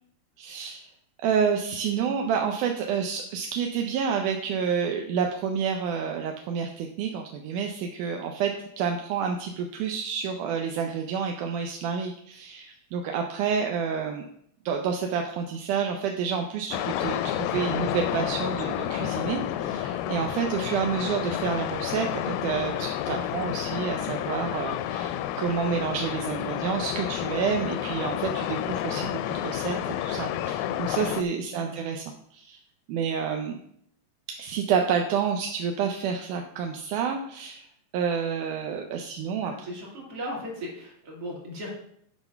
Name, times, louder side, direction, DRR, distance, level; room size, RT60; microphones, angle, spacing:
voice 1, 0.4-0.8 1.2-14.3 14.7-32.0 32.3-32.6 32.9-33.6 34.4-37.7 37.9-39.5, right 6 dB, 75° right, 3 dB, 1.9 m, -29 dB
sound 1, 16.7-31.2, left 11 dB, 85° left, 2.4 m, -30 dB
voice 2, 31.5-31.8 39.4-41.7, equal, 40° right, -2 dB, 3.0 m, -37 dB
9.7 x 4.7 x 5.6 m, 0.70 s
omnidirectional pair, 4.3 m